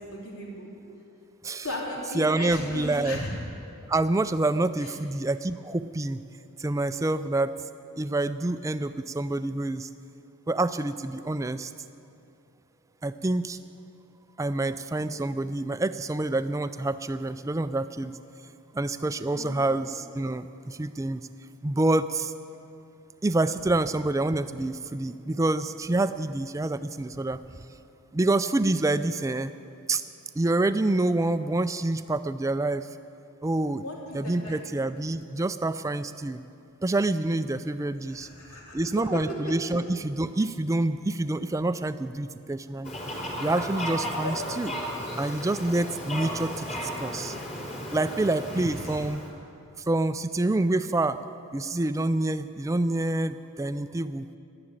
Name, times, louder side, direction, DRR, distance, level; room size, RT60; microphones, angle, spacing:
voice 1, 0.1-0.7 1.6-3.3 19.3-19.8 33.8-34.6 38.0-39.1 44.2-44.3 48.6-49.0, left 1 dB, 80° left, -3 dB, 3.3 m, -37 dB
voice 2, 2.1-3.2 3.9-6.2 6.6-7.5 8.0-9.9 10.5-11.7 13.0-13.6 14.4-18.2 18.7-21.2 21.6-22.3 23.2-27.4 28.1-29.5 29.9-30.0 30.4-32.9 33.4-33.8 34.1-36.4 36.8-38.3 38.7-43.0 43.4-44.7 45.2-47.4 47.9-49.2 49.8-51.2 51.5-54.3, right 2 dB, 15° right, 12 dB, 0.3 m, -27 dB
Fowl, 42.8-49.3, equal, 35° left, 3.6 m, -35 dB
12.0 x 11.0 x 8.9 m, 2.6 s
head